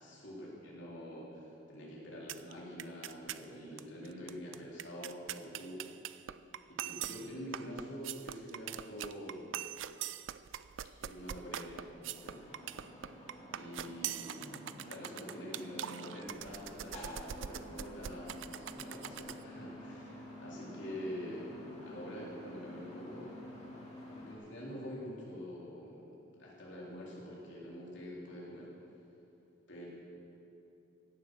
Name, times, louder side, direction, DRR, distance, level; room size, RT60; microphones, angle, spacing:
voice 1, 0.0-5.8 6.7-9.6 11.0-12.5 12.8-12.9 13.5-23.3 23.6-23.7 24.1-28.7 29.7-29.9, equal, 65° left, -5 dB, 3.9 m, -46 dB
sound 1, 2.3-2.5 2.8-3.4 3.8-3.9 4.1-19.4, right 10 dB, 75° right, 0.4 m, -43 dB
sound 2, 12.1-24.3, left 1 dB, 35° left, 2.8 m, -49 dB
16.5 x 10.5 x 6.4 m, 2.8 s
head